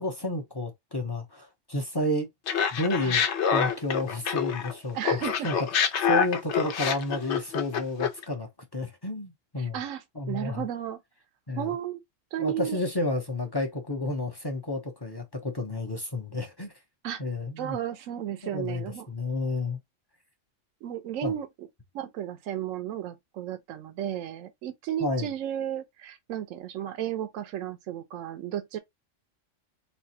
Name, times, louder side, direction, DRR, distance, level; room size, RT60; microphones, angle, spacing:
voice 1, 0.0-2.3 2.7-3.2 3.5-9.8 10.2-10.6 11.5-11.7 12.4-16.7 17.2-17.8 18.5-19.8 21.2-21.3 25.0-25.3, left 2 dB, 25° left, 0.6 m, -31 dB
Laughter, 2.5-4.7 5.0-8.2, left 7 dB, 65° left, 0.9 m, -26 dB
voice 2, 4.9-5.5 9.6-11.0 11.6-12.0 12.3-12.8 17.0-17.2 17.6-19.1 20.8-21.5 21.9-28.8, right 11 dB, 90° right, 1.0 m, -33 dB
4.1 x 2.4 x 2.8 m
omnidirectional pair, 1.3 m